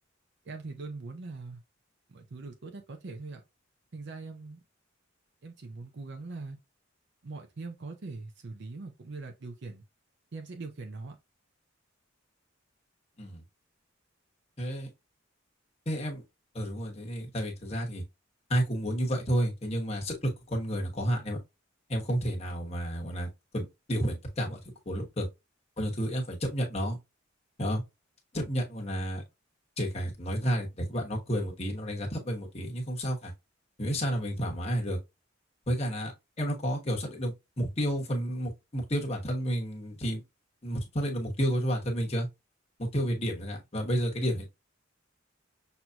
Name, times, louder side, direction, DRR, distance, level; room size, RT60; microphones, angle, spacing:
voice 1, 0.4-1.6 2.1-3.4 3.9-4.6 5.4-6.6 7.2-9.8 10.3-11.2, right 3 dB, 60° right, 0.6 m, -41 dB
voice 2, 14.6-14.9 15.9-16.2 16.5-18.0 18.5-21.4 21.9-23.3 23.5-24.6 24.9-25.3 25.8-27.0 27.6-27.8 28.3-29.2 29.8-33.3 33.8-35.0 35.7-36.1 36.4-40.2 40.6-42.3 42.8-44.5, equal, 30° left, 1.2 m, -31 dB
6.1 x 2.8 x 2.3 m
head